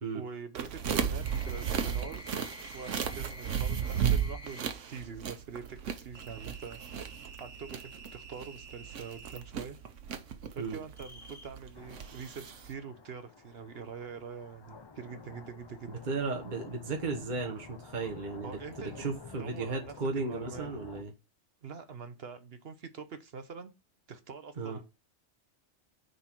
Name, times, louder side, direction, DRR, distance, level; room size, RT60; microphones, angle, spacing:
voice 1, 0.1-2.5 2.7-7.1 7.4-9.8 10.5-15.9 18.4-19.1 19.4-20.7 21.6-23.7 24.1-24.9, right 6 dB, 60° right, 1.0 m, -44 dB
sound 1, 0.5-12.7, right 8 dB, 90° right, 1.2 m, -35 dB
sound 2, 1.2-4.7 6.1-9.4 11.0-11.5, right 1 dB, 5° right, 2.4 m, -49 dB
sound 3, 11.7-21.0, left 4 dB, 30° left, 0.5 m, -50 dB
voice 2, 15.9-18.5 18.8-21.1 24.6-24.8, right 3 dB, 40° right, 1.3 m, -35 dB
9.5 x 4.1 x 4.5 m
omnidirectional pair, 1.2 m